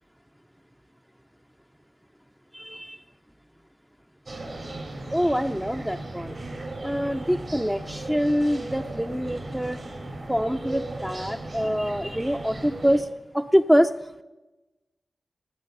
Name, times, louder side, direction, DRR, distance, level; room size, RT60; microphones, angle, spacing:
voice 1, 2.5-3.0 5.1-6.4 6.8-9.8 10.3-13.1 13.3-13.9, equal, 5° right, 6 dB, 0.4 m, -25 dB
sound 1, 4.3-13.0, right 2 dB, 60° right, 3.3 m, -37 dB
18.5 x 9.4 x 5.4 m, 1.1 s
wide cardioid pair, 95°, 0 cm